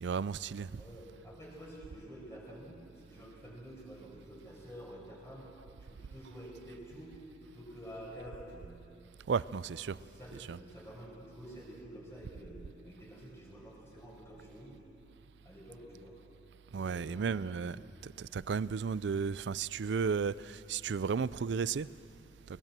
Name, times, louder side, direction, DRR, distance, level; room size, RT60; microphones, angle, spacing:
voice 1, 0.0-0.7 9.3-10.0 10.3-10.6 16.7-17.8 18.0-21.9, right 5 dB, 75° right, 0.4 m, -33 dB
voice 2, 0.8-5.4 5.8-7.1 7.4-8.7 9.9-14.7 15.4-16.1 16.7-17.7, equal, 15° left, 5.2 m, -49 dB
21.5 x 20.5 x 7.5 m
head